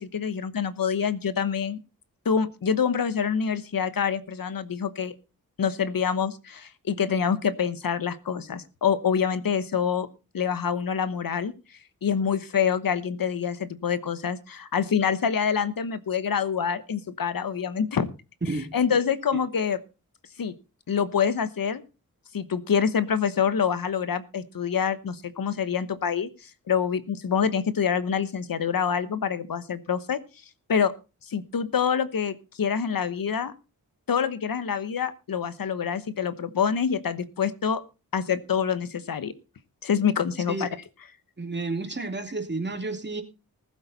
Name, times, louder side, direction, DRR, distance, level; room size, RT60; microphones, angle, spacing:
voice 1, 0.0-1.8 2.2-5.2 5.6-10.1 10.3-11.5 12.0-18.1 18.7-19.8 20.4-20.5 20.9-21.8 22.3-30.2 30.7-30.9 31.3-33.5 34.1-37.8 38.1-39.3 39.8-40.7, left 7 dB, 70° left, 13 dB, 1.1 m, -26 dB
voice 2, 41.4-43.2, right 3 dB, 30° right, 5 dB, 2.6 m, -31 dB
19.5 x 8.2 x 4.1 m, 0.31 s
wide cardioid pair, 95°, 36 cm